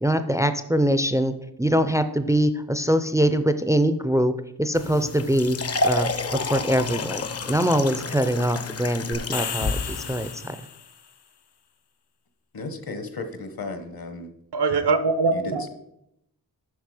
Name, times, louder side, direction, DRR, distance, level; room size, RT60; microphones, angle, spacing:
voice 1, 0.0-1.3 1.6-4.3 4.6-5.6 5.8-10.6, equal, 10° right, 11 dB, 0.3 m, -23 dB
sound 1, 4.7-10.3, left 3 dB, 40° left, 0.5 m, -30 dB
sound 2, 9.1-11.1, left 7 dB, 90° left, 0.8 m, -34 dB
voice 2, 12.5-14.3 15.3-15.7, left 3 dB, 65° left, 9 dB, 1.1 m, -34 dB
voice 3, 14.5-15.7, right 3 dB, 80° right, 12 dB, 0.8 m, -22 dB
8.2 x 5.9 x 4.8 m, 0.80 s
wide cardioid pair, 135°, 39 cm